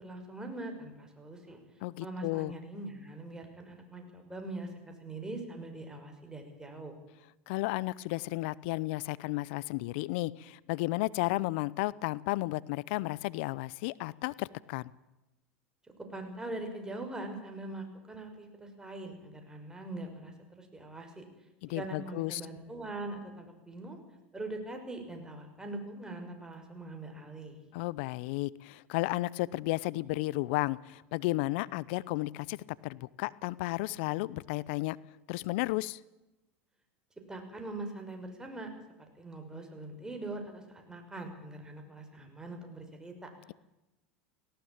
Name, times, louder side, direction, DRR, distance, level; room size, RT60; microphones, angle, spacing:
voice 1, 0.0-1.6 2.0-7.0 16.1-21.2 21.7-24.0 24.3-27.6 37.3-38.7 39.2-43.3, right 2 dB, 10° right, 4 dB, 5.9 m, -42 dB
voice 2, 1.8-2.5 7.5-14.9 21.6-22.4 27.7-32.6 32.8-35.0 35.3-36.0, left 20 dB, 65° left, 21 dB, 0.7 m, -33 dB
18.5 x 17.5 x 8.7 m, 0.98 s
hypercardioid pair, 100°, 7 cm